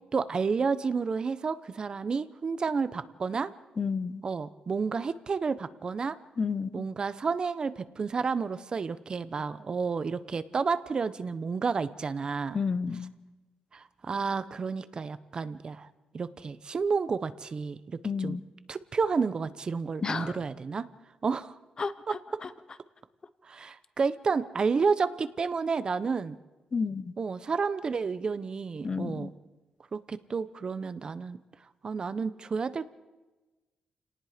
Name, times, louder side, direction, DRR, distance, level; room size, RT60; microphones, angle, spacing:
voice 1, 0.1-3.5 4.2-6.2 6.7-12.6 13.7-15.9 16.1-18.4 18.7-20.9 21.2-21.5 22.1-22.2 23.4-26.4 27.2-29.3 29.9-31.4 31.8-32.9, right 5 dB, 35° right, 14 dB, 0.9 m, -30 dB
voice 2, 3.8-4.2 6.4-6.9 12.5-13.1 18.0-18.4 20.0-20.3 21.8-22.5 26.7-27.1 28.8-29.3, left 5 dB, 35° left, 14 dB, 1.0 m, -31 dB
29.5 x 18.5 x 5.1 m, 1.2 s
wide cardioid pair, 145°, 2 cm